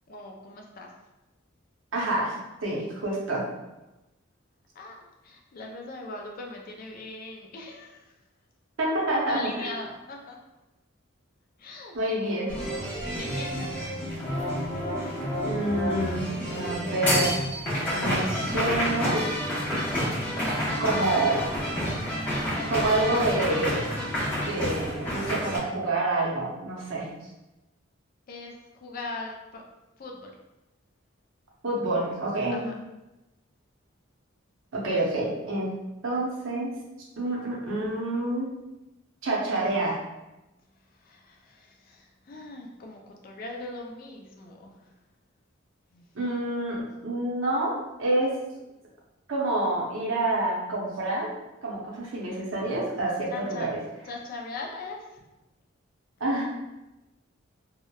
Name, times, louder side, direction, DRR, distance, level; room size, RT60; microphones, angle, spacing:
voice 1, 0.1-0.9 4.8-8.1 9.3-10.4 11.6-12.0 12.9-13.8 28.3-29.7 30.0-30.4 32.5-32.8 40.9-44.9 45.9-46.1 53.3-53.7 54.0-55.2, left 3 dB, 45° left, 1 dB, 0.3 m, -40 dB
voice 2, 1.9-2.3 2.6-3.4 8.8-9.7 11.9-12.5 15.4-16.3 16.5-17.4 17.9-19.2 20.8-21.4 22.6-23.8 24.4-27.1 31.6-32.6 34.7-35.8 36.0-36.7 37.2-38.5 39.2-40.0 46.1-48.3 49.3-51.3 51.6-53.8 56.2-56.4, right 2 dB, 70° right, -3 dB, 0.6 m, -27 dB
sound 1, 12.5-25.6, equal, 10° left, 0.8 m, -29 dB
2.8 x 2.0 x 2.2 m, 0.99 s
head